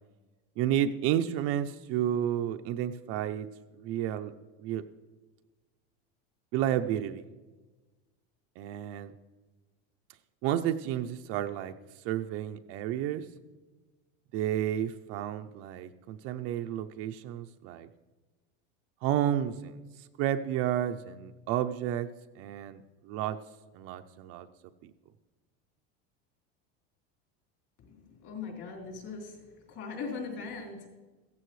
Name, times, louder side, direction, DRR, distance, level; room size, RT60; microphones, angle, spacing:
voice 1, 0.6-3.5 3.8-4.3 4.6-4.8 6.5-7.2 8.6-9.1 10.4-11.8 12.0-13.3 14.3-17.9 19.0-23.4 23.7-24.5 24.8-24.9, right 11 dB, 45° right, 8 dB, 0.6 m, -31 dB
voice 2, 27.8-29.4 29.7-30.9, left 4 dB, 45° left, 0 dB, 4.1 m, -40 dB
16.0 x 14.5 x 3.2 m, 1.2 s
supercardioid pair, 155°, 33 cm